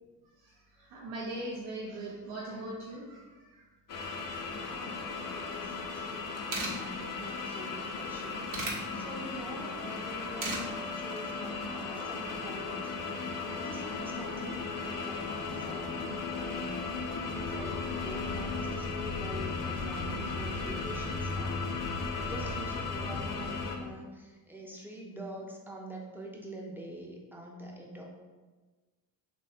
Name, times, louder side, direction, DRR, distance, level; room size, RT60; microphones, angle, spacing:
voice 1, 0.8-3.5, right 1 dB, 80° right, -4 dB, 0.6 m, -40 dB
sound 1, 3.9-23.8, left 4 dB, 40° left, 0.6 m, -36 dB
voice 2, 4.4-8.5 8.9-12.9 13.5-16.8 17.3-21.7 22.2-28.0, right 1 dB, 5° right, -2 dB, 0.6 m, -45 dB
sound 2, 6.0-6.1 6.3-6.7 8.0-8.8 10.1-10.6 11.0-11.2, right 2 dB, 40° right, 0.8 m, -35 dB
3.1 x 2.1 x 2.7 m, 1.3 s
hypercardioid pair, 40°, 49 cm